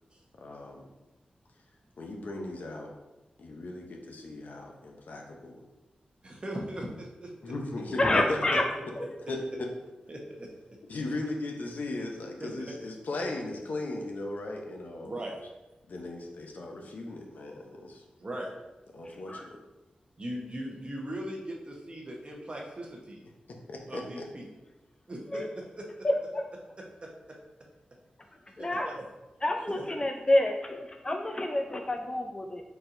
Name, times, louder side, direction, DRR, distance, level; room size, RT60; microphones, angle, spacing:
voice 1, 0.4-0.9 2.0-2.9 3.4-5.7 7.4-8.6 9.3-9.7 10.9-15.2 15.9-18.0 18.9-19.6 23.7-24.3, left 2 dB, 70° left, 1 dB, 0.7 m, -37 dB
voice 2, 6.2-7.5 10.1-10.5 12.4-12.5 15.0-15.3 18.2-18.5 20.2-23.2 23.9-24.4 25.1-25.4 25.8-25.9 27.0-27.4 28.6-29.0 29.7-29.8, right 1 dB, 40° right, -1 dB, 1.0 m, -39 dB
voice 3, 8.0-8.6 19.3-19.4 25.3-25.5 26.3-26.4 28.6-28.9 29.4-32.6, left 1 dB, 30° left, 3 dB, 0.4 m, -28 dB
4.3 x 4.2 x 2.6 m, 1.0 s
wide cardioid pair, 80°, 3 cm